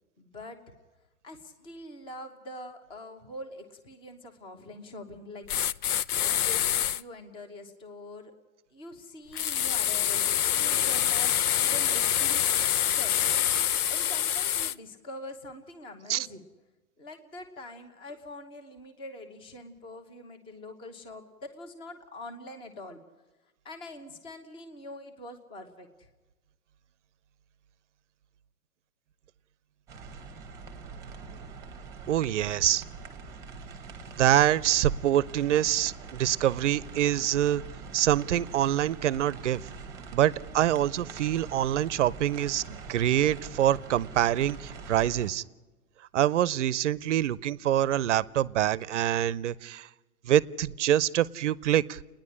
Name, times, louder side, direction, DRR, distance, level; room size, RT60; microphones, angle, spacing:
voice 1, 0.2-0.6 1.2-5.5 6.2-8.3 8.7-10.2 10.5-13.1 13.9-16.4 17.0-23.0 23.6-26.1, left 1 dB, 10° left, 7 dB, 1.0 m, -44 dB
sound 1, 5.5-7.0 9.4-14.7, left 10 dB, 85° left, 0.7 m, -26 dB
sound 2, 29.9-45.3, right 4 dB, 5° right, 1.3 m, -44 dB
voice 2, 32.1-32.8 34.2-37.6 37.9-39.6 40.1-45.4 46.1-49.9 50.2-52.0, right 12 dB, 55° right, 21 dB, 0.7 m, -25 dB
29.0 x 10.5 x 9.9 m, 1.2 s
hypercardioid pair, 165°, 44 cm